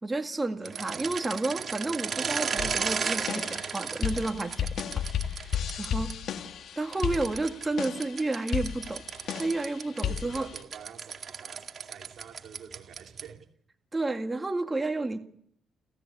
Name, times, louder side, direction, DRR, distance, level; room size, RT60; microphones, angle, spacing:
voice 1, 0.0-4.7 5.3-6.1 6.8-9.0 9.4-10.5 13.9-15.2, right 2 dB, 20° right, 1.9 m, -31 dB
voice 2, 0.5-1.1 10.0-13.5, right 8 dB, 70° right, 2.9 m, -48 dB
sound 1, 0.6-6.1 6.9-13.4, right 6 dB, 45° right, 2.2 m, -35 dB
sound 2, 2.6-10.6, left 9 dB, 70° left, 2.0 m, -34 dB
29.5 x 13.5 x 8.6 m
cardioid pair, 90°, 0 cm